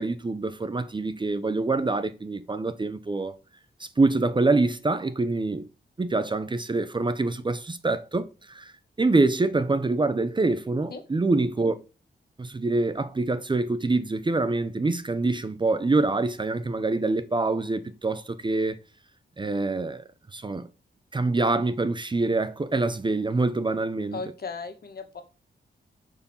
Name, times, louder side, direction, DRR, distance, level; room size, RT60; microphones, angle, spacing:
voice 1, 0.0-3.3 3.8-5.7 6.0-8.7 9.0-11.8 12.4-18.8 19.4-20.0 20.3-20.7 21.1-24.2, right 3 dB, 25° right, 0.8 m, -25 dB
voice 2, 24.1-25.2, left 4 dB, 55° left, 2.0 m, -36 dB
9.2 x 4.7 x 7.2 m
wide cardioid pair, 115°, 19 cm